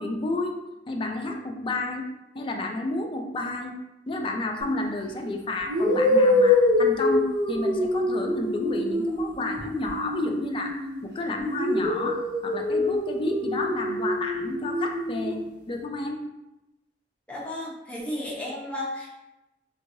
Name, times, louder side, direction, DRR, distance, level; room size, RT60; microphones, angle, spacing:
voice 1, 0.0-2.1 2.3-3.7 4.1-15.4 15.7-16.2, left 2 dB, 30° left, 3 dB, 0.4 m, -31 dB
sound 1, 4.6-4.8 5.6-11.0 11.4-15.4, left 2 dB, 75° right, 1.2 m, -25 dB
voice 2, 17.3-19.2, left 1 dB, 5° left, -6 dB, 0.8 m, -33 dB
3.5 x 3.0 x 2.6 m, 0.97 s
head